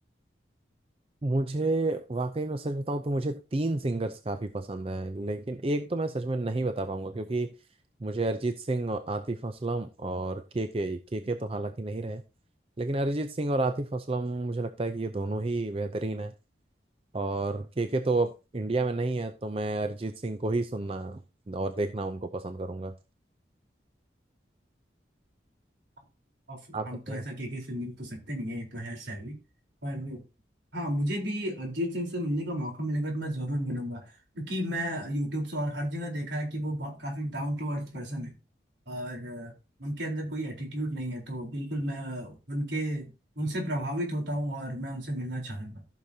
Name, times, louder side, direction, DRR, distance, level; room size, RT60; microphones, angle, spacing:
voice 1, 1.2-7.5 8.0-12.2 12.8-16.3 17.1-21.2 21.5-22.9 26.7-27.2, right 2 dB, 30° right, 8 dB, 0.5 m, -30 dB
voice 2, 26.5-29.4 29.8-30.2 30.7-38.4 38.9-39.5 39.8-45.8, equal, 75° right, 1 dB, 3.9 m, -33 dB
14.5 x 6.5 x 2.8 m, 0.30 s
head